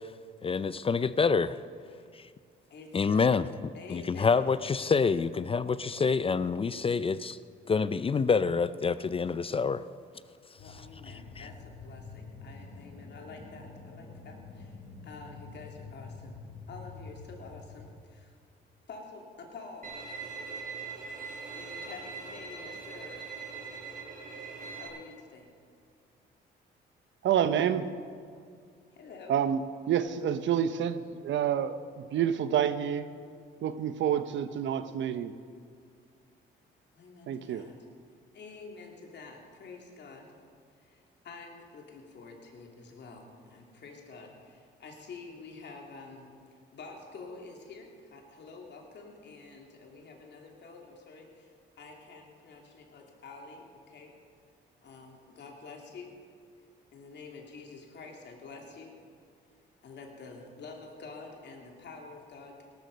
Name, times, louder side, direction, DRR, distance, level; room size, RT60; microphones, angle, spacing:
voice 1, 0.4-1.6 2.9-3.5 3.9-7.4 7.7-9.8 11.4-11.5, left 5 dB, 30° left, 15 dB, 0.4 m, -27 dB
voice 2, 2.7-3.3 3.7-4.5 10.6-14.7 15.0-16.4 16.7-18.3 18.9-19.9 21.5-23.2 24.8-25.5 29.0-29.4 36.9-37.7 38.3-40.3 41.2-46.3 46.7-51.5 51.8-54.2 54.8-56.1 56.9-58.9 59.8-62.6, left 4 dB, 60° left, 1 dB, 2.9 m, -48 dB
sound 1, 10.6-17.9, left 4 dB, 85° left, 3.7 m, -47 dB
Bowed string instrument, 19.8-24.9, right 5 dB, 45° right, 5.0 m, -41 dB
voice 3, 27.2-27.9 29.3-29.6 29.9-33.0 33.6-35.3 37.3-37.6, right 9 dB, 70° right, 12 dB, 0.8 m, -28 dB
18.0 x 12.5 x 5.3 m, 2.2 s
cardioid pair, 90°, 20 cm